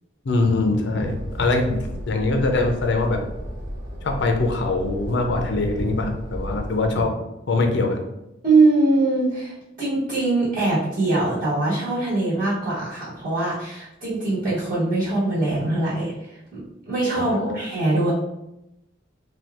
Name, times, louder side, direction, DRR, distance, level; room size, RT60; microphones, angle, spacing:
voice 1, 0.2-1.8 2.1-3.2 4.0-7.1 7.5-8.0 17.1-17.6, left 2 dB, 65° left, 4 dB, 0.5 m, -22 dB
sound 1, 1.0-7.0, equal, 75° right, 0.7 m, -34 dB
voice 2, 8.4-18.1, right 2 dB, 50° right, -9 dB, 1.2 m, -22 dB
2.7 x 2.3 x 3.4 m, 0.88 s
head